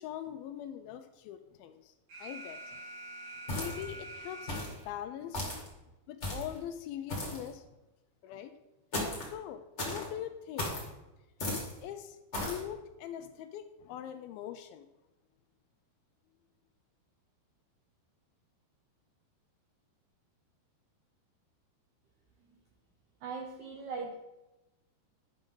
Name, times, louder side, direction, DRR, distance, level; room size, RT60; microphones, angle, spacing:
voice 1, 0.0-1.9 2.2-2.8 3.6-4.6 4.9-5.4 6.1-7.6 8.2-8.6 9.2-10.9 11.4-14.9, left 10 dB, 80° left, 9 dB, 2.2 m, -42 dB
Alarm, 2.1-5.1, right 2 dB, 55° right, 3.5 m, -46 dB
sound 1, 3.5-4.0 4.5-4.8 5.3-5.7 6.2-6.6 7.1-7.5 8.9-9.3 9.8-10.1 10.6-10.9 11.4-11.7 12.3-12.6, left 1 dB, 30° left, 1.2 m, -35 dB
voice 2, 23.2-24.2, right 4 dB, 80° right, 1 dB, 1.7 m, -39 dB
10.0 x 6.1 x 3.8 m, 1.0 s
omnidirectional pair, 4.5 m